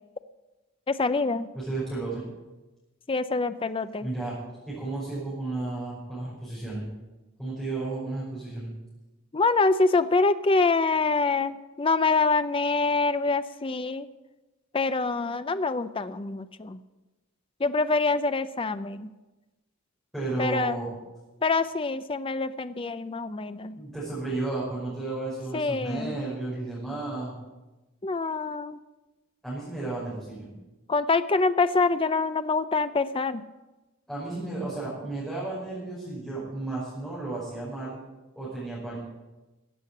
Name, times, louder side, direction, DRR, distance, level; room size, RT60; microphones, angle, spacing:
voice 1, 0.9-1.5 3.1-4.1 9.3-14.1 14.7-16.8 17.6-19.1 20.4-20.8 21.4-23.8 25.5-26.1 28.0-28.8 30.9-33.4, left 3 dB, 25° left, 12 dB, 0.5 m, -25 dB
voice 2, 1.5-2.2 4.0-4.4 4.7-6.9 7.4-8.7 20.1-20.9 23.8-27.3 29.4-30.5 34.1-38.0 38.4-39.0, right 2 dB, ahead, -10 dB, 5.6 m, -33 dB
14.5 x 8.3 x 8.5 m, 1.1 s
head